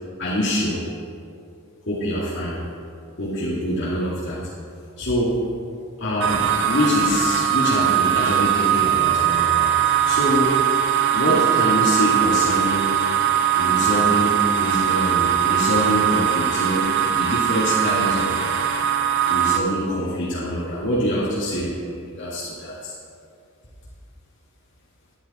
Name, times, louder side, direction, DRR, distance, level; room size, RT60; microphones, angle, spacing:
voice 1, 0.2-0.8 1.9-2.6 3.2-4.4 5.0-5.4 6.0-9.7 10.0-10.5 11.1-12.9 13.6-18.3 19.3-22.9, equal, 60° left, -8 dB, 2.1 m, -24 dB
sound 1, 6.2-19.6, right 10 dB, 60° right, 0.7 m, -20 dB
11.5 x 11.5 x 4.2 m, 2.4 s
head